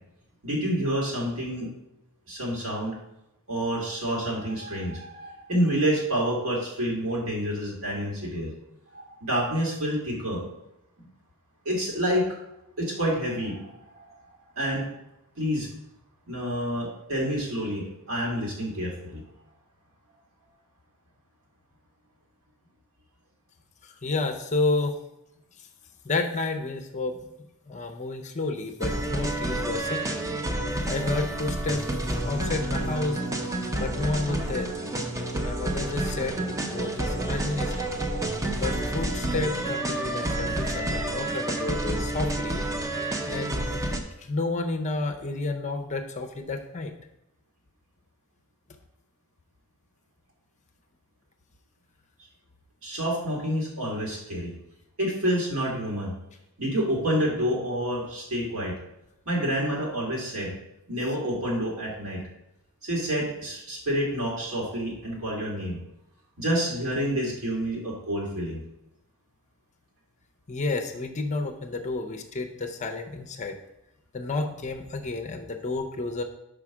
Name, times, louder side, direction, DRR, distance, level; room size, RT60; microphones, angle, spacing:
voice 1, 0.4-1.7 2.3-2.9 3.5-8.5 8.9-10.4 11.6-12.2 12.8-14.8 15.4-15.7 16.3-19.2 52.8-54.5 55.0-56.1 56.6-58.7 59.3-60.5 60.9-62.2 62.8-65.8 66.4-68.6, equal, 65° right, -4 dB, 2.3 m, -28 dB
voice 2, 23.8-24.9 26.0-27.2 27.7-30.3 30.9-31.8 32.2-33.2 33.8-34.7 35.4-37.9 38.6-42.6 43.2-43.8 44.2-46.9 70.5-73.6 74.1-76.2, left 3 dB, 30° left, 4 dB, 0.6 m, -30 dB
sound 1, 28.8-44.0, right 1 dB, 15° right, 0.6 m, -29 dB
5.0 x 4.8 x 6.0 m, 0.86 s
head